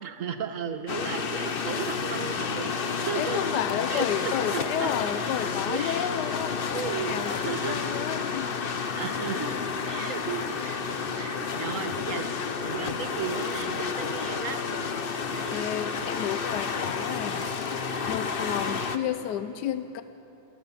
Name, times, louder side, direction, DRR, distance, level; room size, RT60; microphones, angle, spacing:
voice 1, 0.0-2.7 3.1-3.4 3.9-4.9 5.7-6.2 6.7-7.8 8.9-10.8 11.2-12.3 12.6-14.6 15.3-15.7, right 6 dB, 55° right, 8 dB, 1.6 m, -35 dB
sound 1, 0.9-19.0, left 5 dB, 40° left, 0.9 m, -30 dB
voice 2, 3.2-6.6 6.9-8.5 15.5-17.4 18.1-20.0, left 10 dB, 85° left, 10 dB, 1.3 m, -31 dB
29.0 x 16.0 x 7.4 m, 3.0 s
omnidirectional pair, 1.8 m